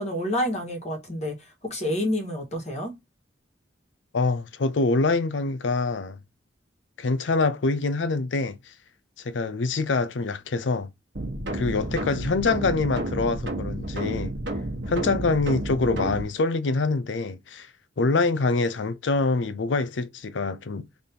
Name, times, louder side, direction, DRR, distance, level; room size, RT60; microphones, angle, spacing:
voice 1, 0.0-1.3 1.6-2.9, left 1 dB, 40° left, 1.5 m, -28 dB
voice 2, 4.1-6.2 7.0-8.7 9.2-10.9 11.5-14.3 14.9-17.7 18.0-20.9, left 3 dB, 85° left, 0.5 m, -25 dB
sound 1, 11.1-16.2, right 1 dB, 70° right, 1.2 m, -31 dB
4.1 x 3.4 x 2.8 m
head